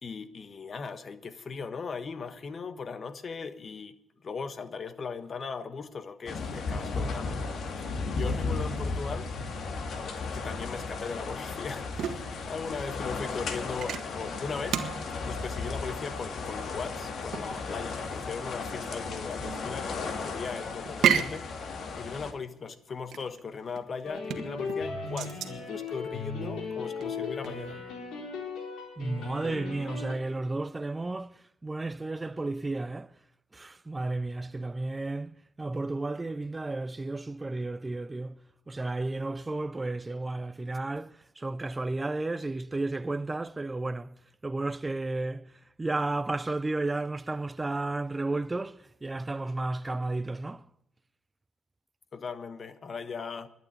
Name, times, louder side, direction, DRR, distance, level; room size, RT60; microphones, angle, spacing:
voice 1, 0.0-3.9 4.2-7.4 7.8-9.3 10.3-14.8 15.2-21.5 21.9-27.8 52.1-53.5, left 5 dB, 45° left, 1.3 m, -38 dB
sound 1, 6.3-22.3, left 4 dB, 60° left, 1.9 m, -35 dB
sound 2, 11.1-27.7, right 8 dB, 70° right, 1.4 m, -35 dB
sound 3, 24.0-30.1, left 4 dB, 80° left, 4.0 m, -37 dB
voice 2, 29.0-31.3 31.6-33.1 33.5-35.3 35.6-38.4 38.7-44.1 44.4-45.5 45.8-50.6, right 2 dB, 20° right, 0.5 m, -32 dB
12.0 x 9.2 x 9.5 m
cardioid pair, 90°, 0 cm